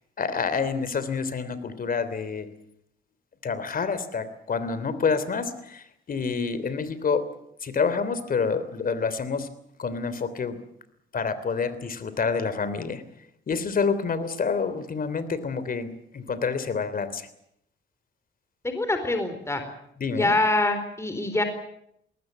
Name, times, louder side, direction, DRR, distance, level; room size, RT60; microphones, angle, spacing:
voice 1, 0.2-2.5 3.4-7.2 7.6-9.5 9.8-10.6 11.1-13.0 13.5-17.3 20.0-20.3, left 5 dB, 45° left, 14 dB, 3.2 m, -28 dB
voice 2, 18.6-19.6 20.2-21.4, left 2 dB, 15° left, 8 dB, 4.1 m, -24 dB
21.0 x 19.0 x 9.3 m, 0.75 s
cardioid pair, 90°, 20 cm